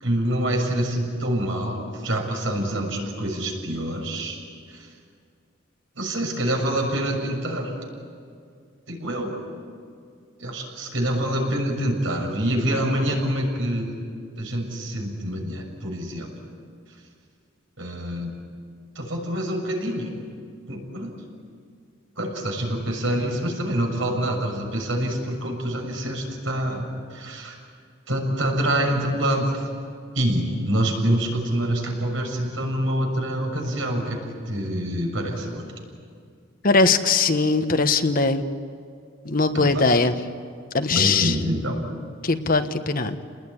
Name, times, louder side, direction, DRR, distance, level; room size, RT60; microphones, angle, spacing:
voice 1, 0.0-4.4 4.7-4.9 6.0-7.7 8.9-9.4 10.4-13.9 14.4-16.3 17.8-18.3 19.0-20.2 20.7-21.2 22.2-27.6 28.1-29.7 30.1-35.7 39.5-39.8 40.9-41.8, right 1 dB, 75° right, 1 dB, 6.8 m, -26 dB
voice 2, 36.6-38.4 39.3-40.1 40.7-41.3 42.2-43.1, left 3 dB, 45° left, 8 dB, 1.2 m, -20 dB
30.0 x 20.0 x 9.8 m, 2.2 s
head